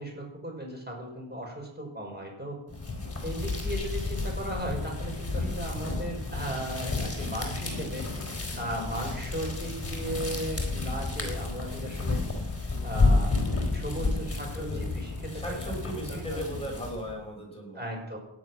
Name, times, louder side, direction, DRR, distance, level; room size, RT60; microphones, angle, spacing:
voice 1, 0.0-2.6 3.2-8.1 8.6-12.2 12.8-13.3 13.7-16.6 17.7-18.2, right 1 dB, 20° right, 1 dB, 5.9 m, -36 dB
sound 1, 2.7-17.1, left 3 dB, 30° left, 4.2 m, -31 dB
voice 2, 15.3-17.8, right 1 dB, 10° left, -1 dB, 6.5 m, -37 dB
17.5 x 10.5 x 6.1 m, 0.83 s
wide cardioid pair, 130°, 48 cm